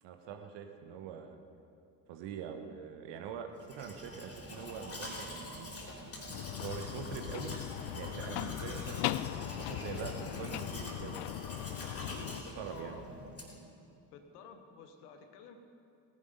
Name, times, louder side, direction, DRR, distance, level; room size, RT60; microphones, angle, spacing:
voice 1, 0.0-1.4 2.1-5.8 6.6-7.5 7.9-9.2 9.6-11.3 12.1-13.0, right 8 dB, 60° right, 5 dB, 1.5 m, -44 dB
Domestic sounds home sounds, 3.6-13.7, left 1 dB, 30° left, 3.9 m, -45 dB
sound 1, 6.3-12.4, left 16 dB, 55° left, 0.5 m, -39 dB
voice 2, 12.7-13.1 14.1-15.6, left 6 dB, 75° left, 7 dB, 1.3 m, -52 dB
18.0 x 10.5 x 5.3 m, 2.5 s
figure-of-eight pair, 45°, 47 cm